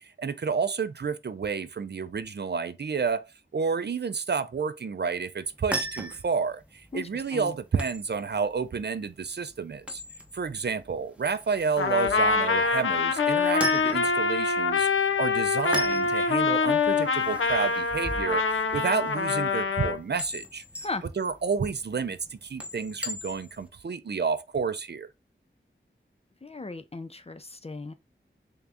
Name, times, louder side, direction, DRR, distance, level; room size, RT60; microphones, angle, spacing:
voice 1, 0.0-3.2 3.5-10.0 10.3-14.9 15.2-18.4 18.7-20.6 21.2-25.1, right 5 dB, 55° right, 0.4 m, -30 dB
sound 1, 5.4-23.7, equal, 5° right, 0.7 m, -39 dB
voice 2, 6.9-7.5 20.8-21.0 26.4-27.9, left 3 dB, 30° left, 0.5 m, -37 dB
Trumpet, 11.8-20.0, left 4 dB, 80° left, 0.5 m, -25 dB
3.5 x 2.7 x 3.4 m
wide cardioid pair, 40°, 21 cm